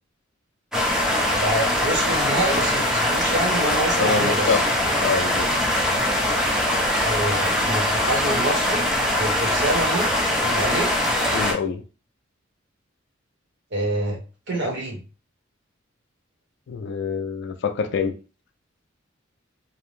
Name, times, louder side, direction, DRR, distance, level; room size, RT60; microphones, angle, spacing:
sound 1, 0.7-11.5, left 1 dB, 5° right, 0.5 m, -22 dB
voice 1, 1.3-4.6 7.0-8.9 9.2-10.9 13.7-14.2 14.5-15.0, right 1 dB, 60° right, 0.9 m, -27 dB
voice 2, 4.0-4.6 5.0-5.5 11.3-11.8 16.7-18.1, left 5 dB, 60° left, 0.3 m, -25 dB
2.6 x 2.0 x 3.0 m
head